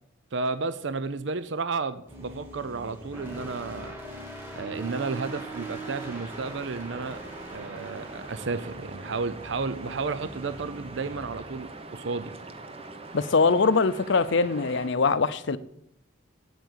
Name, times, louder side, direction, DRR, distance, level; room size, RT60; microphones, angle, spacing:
voice 1, 0.3-3.9 4.5-7.2 7.5-12.4, right 4 dB, 60° right, 0.6 m, -32 dB
sound 1, 2.1-12.4, right 1 dB, 10° right, 2.5 m, -42 dB
sound 2, 4.9-14.9, right 2 dB, 30° right, 1.0 m, -43 dB
voice 2, 13.1-15.6, left 4 dB, 60° left, 0.6 m, -22 dB
8.3 x 8.0 x 8.1 m
head